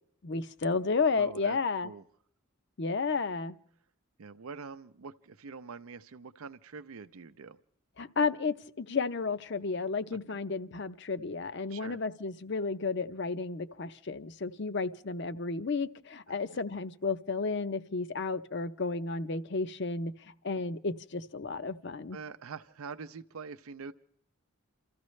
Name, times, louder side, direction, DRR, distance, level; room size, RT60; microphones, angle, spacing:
voice 1, 0.2-1.9 2.8-3.6 8.0-22.2, left 4 dB, 50° left, 0.6 m, -32 dB
voice 2, 1.1-1.6 1.8-2.0 4.2-7.6 10.3-10.4 11.7-12.0 16.3-16.6 22.1-23.9, right 5 dB, 75° right, 0.5 m, -45 dB
29.0 x 14.0 x 3.2 m
head